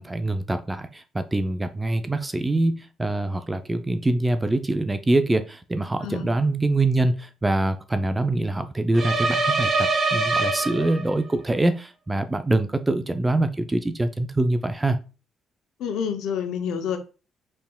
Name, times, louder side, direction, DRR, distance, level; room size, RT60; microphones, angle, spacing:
voice 1, 0.0-15.0, right 2 dB, 15° right, 0.3 m, -24 dB
sound 1, 8.9-11.3, right 3 dB, 50° right, 0.8 m, -24 dB
voice 2, 15.8-17.0, left 7 dB, 80° left, 0.5 m, -28 dB
4.2 x 3.4 x 2.2 m
cardioid pair, 85°, 0 cm